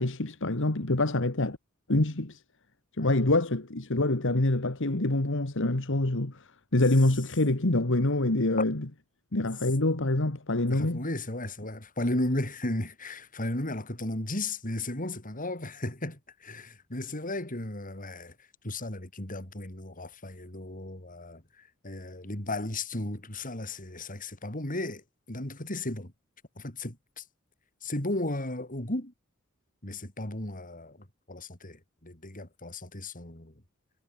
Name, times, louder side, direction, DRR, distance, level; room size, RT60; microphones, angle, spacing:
voice 1, 0.0-1.6 1.9-2.4 3.0-6.4 6.7-8.9 9.3-11.0, left 2 dB, 60° left, 1.9 m, -26 dB
voice 2, 10.7-18.3 18.6-21.4 21.8-25.0 25.3-26.1 26.6-27.2 27.8-29.1 29.8-33.5, left 1 dB, 40° left, 5.0 m, -35 dB
head